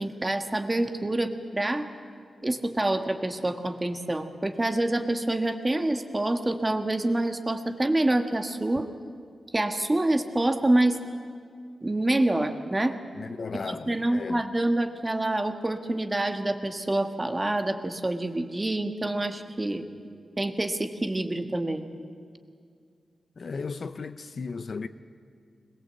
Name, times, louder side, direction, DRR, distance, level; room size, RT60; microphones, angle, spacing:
voice 1, 0.0-1.9 2.4-8.9 9.5-11.0 11.8-13.0 13.5-19.9 20.4-21.8, right 1 dB, 20° right, 1.5 m, -27 dB
voice 2, 13.2-14.4 23.4-24.9, left 4 dB, 55° left, 0.7 m, -35 dB
21.5 x 21.0 x 8.1 m
wide cardioid pair, 110°, 0 cm